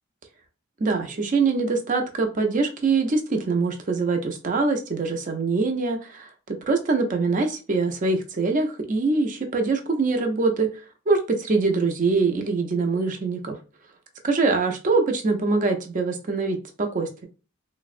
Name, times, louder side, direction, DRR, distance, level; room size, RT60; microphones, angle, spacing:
voice 1, 0.8-10.7 11.1-11.2 11.5-13.6 14.2-17.3, right 3 dB, 40° right, 5 dB, 0.4 m, -23 dB
3.3 x 2.0 x 2.4 m, 0.33 s
head